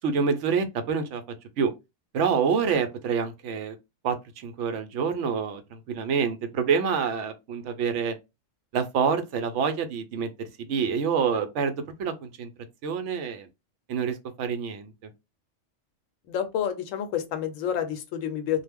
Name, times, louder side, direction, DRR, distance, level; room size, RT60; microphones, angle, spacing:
voice 1, 0.0-1.2 1.6-1.7 2.1-3.8 4.0-8.1 8.7-12.5 12.8-13.5 13.9-14.9, right 6 dB, 75° right, 0.9 m, -27 dB
voice 2, 16.3-18.6, left 9 dB, 85° left, 1.0 m, -29 dB
2.3 x 2.0 x 3.4 m
omnidirectional pair, 1.3 m